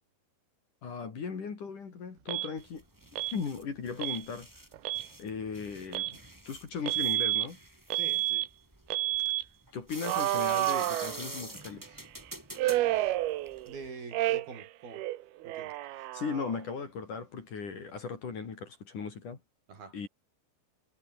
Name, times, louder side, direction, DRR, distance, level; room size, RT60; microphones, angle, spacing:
voice 1, 0.8-2.8 3.3-4.5 5.2-6.2 6.5-7.6 9.7-12.0 16.0-19.4 19.9-20.1, left 5 dB, 45° left, 4.7 m, -37 dB
Alarm, 2.3-2.5 3.2-3.4 4.0-4.2 4.7-5.1 5.9-6.2 6.9-7.5 7.9-8.5 8.9-9.4 10.0-11.6 12.6-13.8 14.1-14.7 14.9-16.6, right 15 dB, 70° right, 2.7 m, -30 dB
sound 1, 2.6-13.9, right 1 dB, 5° right, 3.1 m, -47 dB
voice 2, 7.9-8.5 13.7-15.0 15.4-15.7 19.7-20.0, right 4 dB, 55° right, 7.5 m, -45 dB
omnidirectional pair, 5.2 m